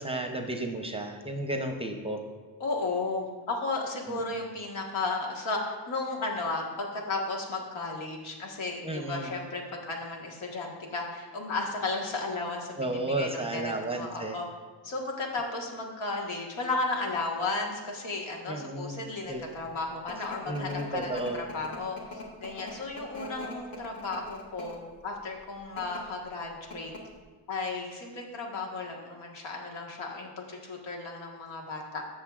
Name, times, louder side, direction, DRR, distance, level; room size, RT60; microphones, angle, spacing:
voice 1, 0.0-2.2 4.1-4.2 8.8-9.3 12.8-14.4 18.5-19.0 19.3-19.4 20.5-21.4, right 1 dB, 15° right, 4 dB, 0.6 m, -33 dB
voice 2, 2.6-14.5 14.8-26.9 27.5-32.0, left 3 dB, 85° left, 0 dB, 1.6 m, -34 dB
sound 1, 19.5-24.9 25.6-26.0 26.4-26.5 26.7-27.2, left 1 dB, 45° left, 1.5 m, -43 dB
14.5 x 6.4 x 2.4 m, 1.5 s
cardioid pair, 125°, 46 cm